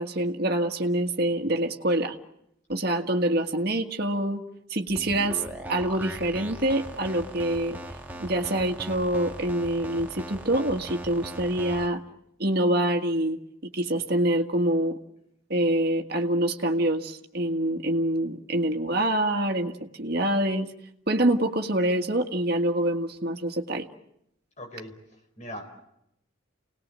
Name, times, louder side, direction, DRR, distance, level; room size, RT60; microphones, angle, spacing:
voice 1, 0.0-2.2 2.7-4.4 4.7-5.4 5.7-7.8 8.2-12.0 12.4-13.4 13.7-15.0 15.5-20.7 21.1-23.9, right 1 dB, 50° right, 4 dB, 1.7 m, -25 dB
sound 1, 4.9-11.9, right 1 dB, 10° right, 1.6 m, -39 dB
voice 2, 24.6-25.6, equal, 35° left, 3 dB, 4.7 m, -41 dB
29.5 x 19.5 x 7.5 m, 0.80 s
head